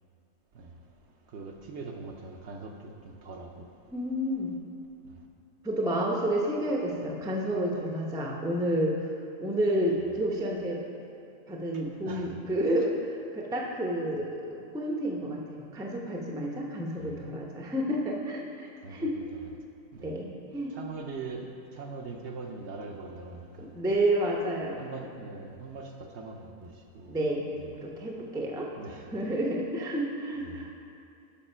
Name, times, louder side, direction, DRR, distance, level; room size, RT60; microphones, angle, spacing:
voice 1, 1.3-3.7 12.1-12.3 17.0-17.2 18.8-19.4 19.9-20.1 20.7-21.5 21.8-23.7 24.8-25.9 26.1-26.7 27.0-27.1 27.6-27.7 28.8-29.0 30.4-30.6, right 4 dB, 65° right, 2 dB, 0.8 m, -41 dB
voice 2, 3.9-4.5 5.6-9.0 9.4-10.8 11.5-19.2 20.0-20.7 23.6-24.8 27.1-27.5 27.8-28.7 29.1-30.7, right 1 dB, 5° right, -1 dB, 0.4 m, -30 dB
7.2 x 5.1 x 5.5 m, 2.6 s
omnidirectional pair, 1.4 m